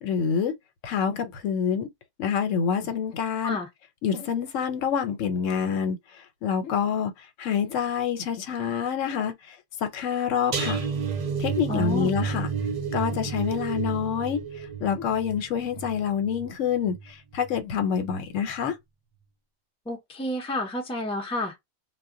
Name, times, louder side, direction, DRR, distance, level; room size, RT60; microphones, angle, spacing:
voice 1, 0.0-0.5 0.8-1.9 2.2-3.6 4.0-6.0 6.4-7.1 7.4-9.6 9.8-10.8 11.4-12.5 12.9-14.4 14.8-18.8, left 7 dB, 85° left, 1.0 m, -27 dB
sound 1, 10.5-17.6 17.9-18.3 18.6-18.7, right 6 dB, 60° right, 0.4 m, -31 dB
voice 2, 11.7-12.1 19.9-21.5, left 1 dB, 5° left, 0.5 m, -30 dB
2.2 x 2.1 x 3.6 m
omnidirectional pair, 1.3 m